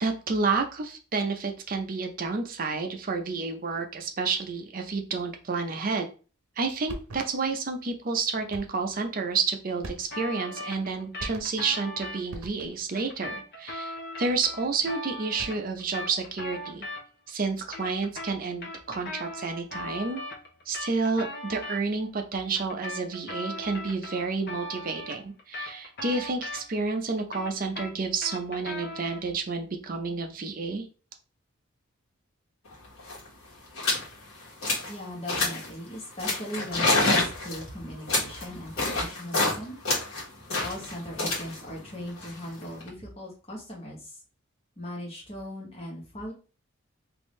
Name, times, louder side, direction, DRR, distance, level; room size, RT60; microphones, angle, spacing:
voice 1, 0.0-6.0 6.6-16.8 17.3-20.2 20.7-30.8, right 4 dB, 40° right, 5 dB, 0.5 m, -30 dB
sound 1, 6.9-7.5 8.5-8.9 9.8-10.4 11.2-11.8 12.3-13.0 15.2-15.8, right 2 dB, 90° right, 0.7 m, -42 dB
sound 2, 10.1-12.2 12.9-17.3 17.6-21.8 22.5-26.9 27.2-29.3, left 1 dB, 50° left, 0.7 m, -39 dB
sound 3, 32.7-32.8 33.0-33.3 33.7-34.1 34.4-34.9 35.3-35.7 36.2-39.6 39.8-42.9, left 2 dB, 80° left, 1.3 m, -28 dB
voice 2, 34.9-39.8 40.6-44.2 44.8-46.3, equal, 30° left, -3 dB, 1.2 m, -38 dB
3.4 x 2.6 x 3.1 m, 0.36 s
head